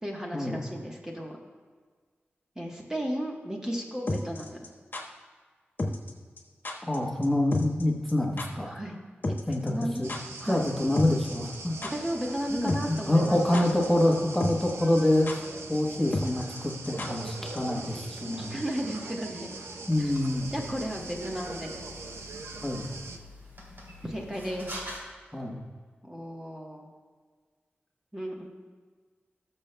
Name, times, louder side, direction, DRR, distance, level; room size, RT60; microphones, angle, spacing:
voice 1, 0.0-1.4 2.6-4.6 8.6-9.0 9.6-10.1 10.4-10.6 11.8-13.7 18.4-19.5 20.0-20.1 20.5-21.7 24.0-24.8 26.0-26.9 28.1-28.5, equal, 15° right, -1 dB, 1.2 m, -34 dB
sound 1, 4.1-5.0 5.8-6.1 6.4-6.5 6.6-7.0 7.2-7.3 7.5-7.8 8.1-8.2 8.4-8.5 9.2-10.4 10.7-10.8 10.9-11.6 11.8-11.9 12.7-13.0 13.2-13.9 14.1-14.2 14.4-14.7 15.0-15.1 15.3-15.4 16.1-17.3 17.6-17.7, left 2 dB, 50° left, 1.3 m, -32 dB
voice 2, 6.9-8.7 9.5-10.2 10.5-11.8 12.5-15.4 15.7-18.6 19.9-20.5 22.6-22.9 25.3-25.6, left 1 dB, 5° left, -1 dB, 1.2 m, -26 dB
sound 2, 10.0-23.2, right 3 dB, 85° right, 0.7 m, -42 dB
sound 3, 19.9-25.0, left 1 dB, 60° right, 2.6 m, -46 dB
19.5 x 6.6 x 2.2 m, 1.5 s
wide cardioid pair, 100°, 4 cm